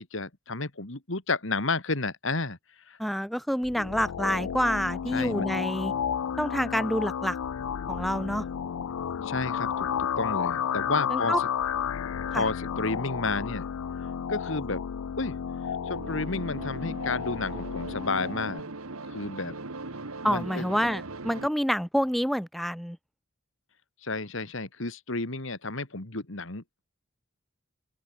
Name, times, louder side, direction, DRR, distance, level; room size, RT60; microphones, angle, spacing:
voice 1, 0.0-2.6 2.9-3.0 5.1-5.5 9.2-11.5 12.3-13.7 14.3-14.8 15.2-15.4 15.8-18.7 19.0-19.5 20.3-20.6 24.0-26.8, left 3 dB, 65° left, 2.3 m, -31 dB
voice 2, 3.0-5.9 6.4-7.4 7.9-8.4 11.1-11.4 12.3-12.4 20.2-23.0, equal, ahead, 0.8 m, -27 dB
sound 1, 3.6-18.6, left 8 dB, 85° left, 0.4 m, -32 dB
sound 2, 15.7-21.5, right 3 dB, 85° right, 1.8 m, -40 dB
open air
head